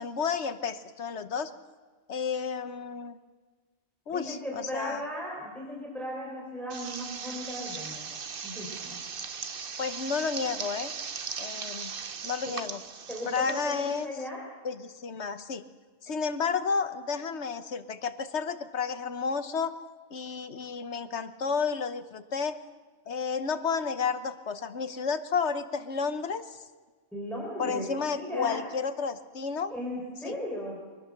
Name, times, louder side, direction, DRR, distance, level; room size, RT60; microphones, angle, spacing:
voice 1, 0.0-1.5 2.1-3.2 4.1-5.0 9.8-10.9 11.4-11.9 12.2-12.8 13.3-14.1 14.6-15.6 16.0-19.7 20.1-22.6 23.1-26.6 27.6-29.7 30.2-30.3, left 5 dB, 55° left, 11 dB, 1.3 m, -31 dB
voice 2, 4.1-8.1 8.4-9.0 12.5-12.6 13.1-14.4 27.1-28.7 29.7-30.8, equal, ahead, -3 dB, 4.7 m, -36 dB
sound 1, 6.7-14.0, right 6 dB, 45° right, 1.0 m, -38 dB
23.5 x 19.5 x 6.7 m, 1.4 s
omnidirectional pair, 1.4 m